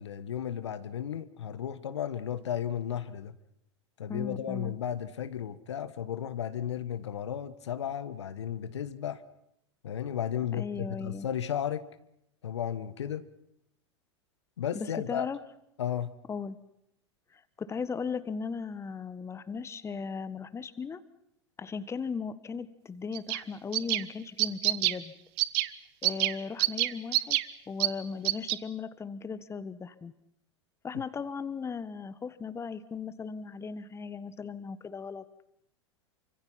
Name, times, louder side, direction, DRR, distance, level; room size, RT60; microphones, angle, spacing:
voice 1, 0.0-3.3 4.0-9.2 9.8-11.8 12.4-13.3 14.6-15.3 15.8-16.1, left 9 dB, 70° left, 1.5 m, -34 dB
voice 2, 4.1-4.7 10.5-11.3 14.7-15.4 16.3-16.6 17.3-21.0 21.6-25.1 26.0-27.4 27.7-30.1 30.8-35.2, left 5 dB, 20° left, 1.5 m, -37 dB
sound 1, 23.1-23.4 23.7-24.0 24.4-25.0 25.4-25.7 26.0-26.3 26.6-27.4 27.8-27.9 28.2-28.5, right 20 dB, 50° right, 1.3 m, -26 dB
28.0 x 25.5 x 5.8 m
figure-of-eight pair, 90°, 15 cm